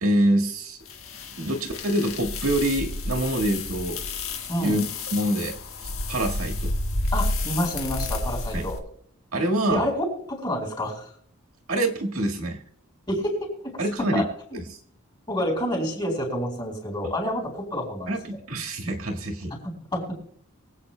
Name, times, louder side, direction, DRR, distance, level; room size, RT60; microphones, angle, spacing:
voice 1, 0.0-0.8 1.4-4.0 4.6-4.8 5.1-5.5 6.1-6.7 8.5-8.6 9.3-9.9 11.7-12.6 13.8-14.2 14.5-14.6 18.1-19.5, right 1 dB, 85° right, 1 dB, 1.7 m, -25 dB
sound 1, 0.9-8.8, left 2 dB, 75° left, 1.6 m, -30 dB
voice 2, 4.5-4.8 7.1-8.8 9.7-11.1 13.1-13.7 14.0-14.3 14.5-14.6 15.3-18.4 19.6-20.1, equal, 20° left, 0 dB, 4.2 m, -28 dB
23.5 x 8.3 x 2.2 m, 0.63 s
head